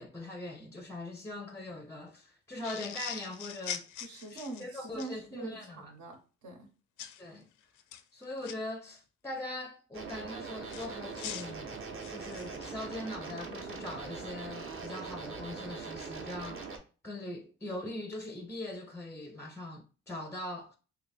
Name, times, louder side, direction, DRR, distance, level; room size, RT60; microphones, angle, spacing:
voice 1, 0.0-3.9 4.3-5.9 7.2-7.5 8.1-11.8 12.1-16.6 17.0-20.8, left 1 dB, 10° left, 0.4 m, -41 dB
sound 1, 2.6-5.1 7.0-7.2 7.8-8.5 10.7-12.6, left 10 dB, 85° left, 0.5 m, -42 dB
voice 2, 4.0-6.7, right 3 dB, 70° right, 1.1 m, -44 dB
sound 2, 9.9-16.8, right 4 dB, 45° right, 0.8 m, -42 dB
2.9 x 2.5 x 4.0 m
cardioid pair, 90°, 30 cm